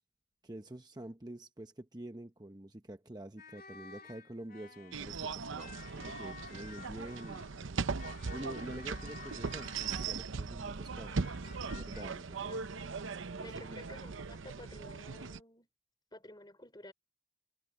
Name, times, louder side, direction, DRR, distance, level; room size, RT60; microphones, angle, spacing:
voice 1, 0.4-7.5 8.1-12.6 13.4-13.8, right 1 dB, 20° right, 0.8 m, -47 dB
sound 1, 3.4-5.2 5.6-10.5 10.9-12.0, left 6 dB, 45° left, 3.2 m, -53 dB
sound 2, 4.9-15.4, right 4 dB, 80° right, 0.7 m, -39 dB
voice 2, 12.5-13.1 13.4-15.7 16.1-16.9, left 1 dB, 20° left, 3.9 m, -53 dB
head